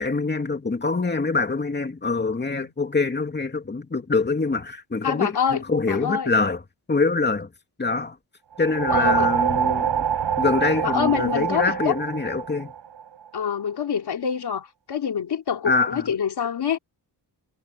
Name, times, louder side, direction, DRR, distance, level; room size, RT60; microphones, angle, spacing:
voice 1, 0.0-6.6 6.9-7.5 7.8-8.2 8.6-10.1 10.4-12.7 15.7-16.1, left 3 dB, 25° left, 2.7 m, -24 dB
voice 2, 5.0-5.6 5.9-6.3 8.9-9.3 10.8-11.9 13.3-16.8, left 8 dB, 65° left, 2.9 m, -26 dB
sound 1, 8.6-13.2, right 8 dB, 75° right, 6.5 m, -25 dB
wide cardioid pair, 115°, 42 cm